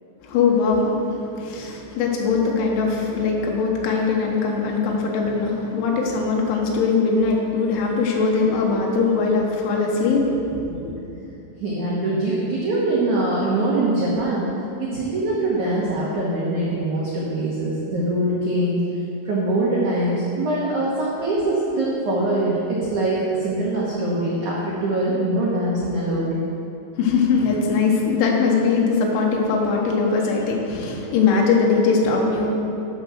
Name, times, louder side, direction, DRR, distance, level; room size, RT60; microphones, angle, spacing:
voice 1, 0.2-11.0 27.0-32.5, left 4 dB, 80° left, -1 dB, 3.5 m, -21 dB
voice 2, 11.6-14.4 14.8-18.8 19.3-26.3, right 2 dB, 90° right, -6 dB, 1.7 m, -23 dB
12.0 x 4.5 x 6.2 m, 2.8 s
omnidirectional pair, 5.3 m